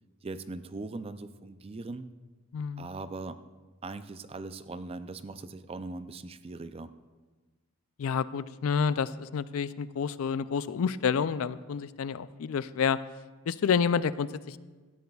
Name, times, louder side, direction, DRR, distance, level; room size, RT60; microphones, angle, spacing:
voice 1, 0.2-2.1 2.8-3.4 3.8-6.9, right 3 dB, 25° right, 12 dB, 0.4 m, -40 dB
voice 2, 2.5-2.9 8.0-13.0 13.5-14.6, left 6 dB, 70° left, 15 dB, 0.4 m, -29 dB
16.5 x 13.0 x 2.3 m, 1.3 s
head